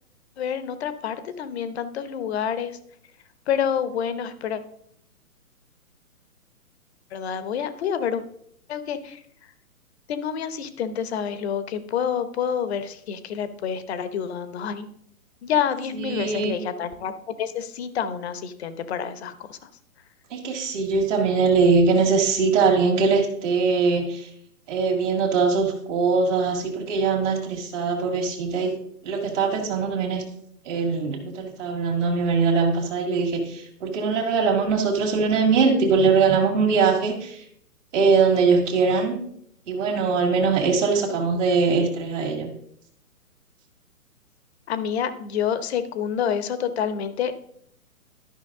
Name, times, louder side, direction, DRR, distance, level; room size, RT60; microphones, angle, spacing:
voice 1, 0.4-2.8 3.5-4.6 7.1-8.2 8.7-9.2 10.1-14.9 15.4-19.7 44.7-47.3, left 8 dB, 45° left, 12 dB, 0.9 m, -28 dB
voice 2, 15.9-16.6 20.3-24.3 24.7-28.7 29.0-30.2 30.6-37.5 37.9-39.1 39.7-42.5, right 4 dB, 50° right, -1 dB, 2.1 m, -22 dB
12.0 x 5.7 x 3.6 m, 0.69 s
hypercardioid pair, 135°, 44 cm